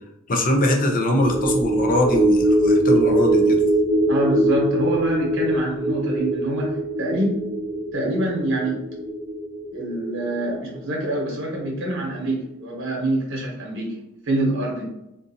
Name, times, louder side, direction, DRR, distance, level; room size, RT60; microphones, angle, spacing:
voice 1, 0.3-3.6, left 1 dB, 40° left, 2 dB, 0.6 m, -21 dB
sound 1, 1.2-11.8 12.2-12.3, right 1 dB, 10° right, 0.3 m, -22 dB
voice 2, 4.1-7.4 7.9-8.8 9.7-13.9 14.2-14.9, right 1 dB, 65° right, -2 dB, 1.1 m, -26 dB
3.8 x 2.6 x 2.7 m, 0.87 s
head